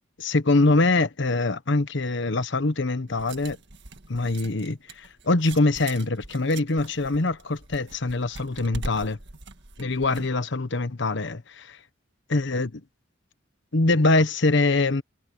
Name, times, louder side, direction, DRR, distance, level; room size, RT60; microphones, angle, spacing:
voice 1, 0.2-3.6 4.1-9.2 9.8-11.8 12.3-12.8 13.7-15.0, left 2 dB, 65° left, 1.1 m, -23 dB
sound 1, 3.1-10.3, right 2 dB, 65° right, 1.8 m, -42 dB
head